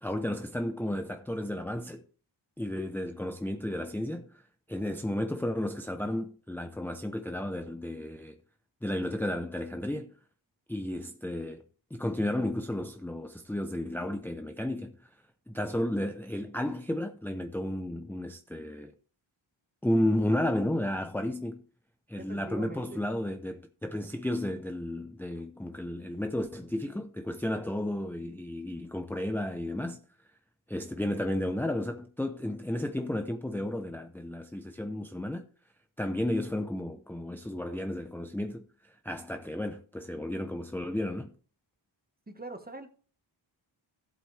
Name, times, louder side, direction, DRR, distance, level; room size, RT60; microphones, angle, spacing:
voice 1, 0.0-2.0 2.6-4.4 4.7-8.4 8.8-10.1 10.7-11.6 11.9-15.1 15.5-18.9 19.8-21.6 22.1-30.0 30.7-35.5 36.0-41.3, left 1 dB, 5° left, 0.7 m, -33 dB
voice 2, 22.2-23.1 42.3-42.9, right 2 dB, 20° right, 1.3 m, -42 dB
14.0 x 8.0 x 3.3 m
cardioid pair, 70°, 48 cm